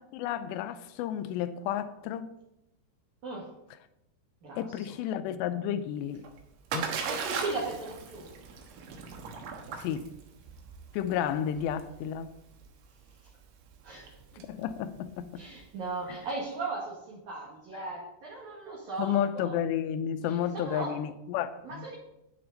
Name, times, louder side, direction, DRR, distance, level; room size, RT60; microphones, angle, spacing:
voice 1, 0.0-2.3 4.6-6.2 6.7-7.0 9.7-10.1 10.9-12.3 14.5-15.3 17.7-17.9 19.0-22.0, left 9 dB, 80° left, 2.7 m, -32 dB
voice 2, 4.4-4.9 7.0-8.3 13.8-14.4 15.4-19.5 20.2-20.9 21.6-22.0, right 3 dB, 55° right, 2.5 m, -37 dB
Splash splatter, 6.0-15.9, right 6 dB, 80° right, 3.7 m, -39 dB
10.0 x 9.7 x 3.9 m
omnidirectional pair, 5.2 m